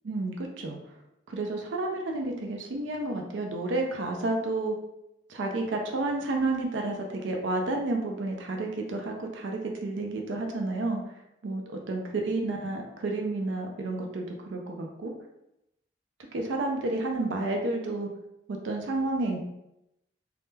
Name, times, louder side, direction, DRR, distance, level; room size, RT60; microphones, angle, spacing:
voice 1, 0.0-0.8 1.3-4.8 5.3-11.0 11.4-15.1 16.3-18.1 18.5-19.4, right 2 dB, 90° right, 2 dB, 0.4 m, -30 dB
2.2 x 2.0 x 3.1 m, 0.84 s
head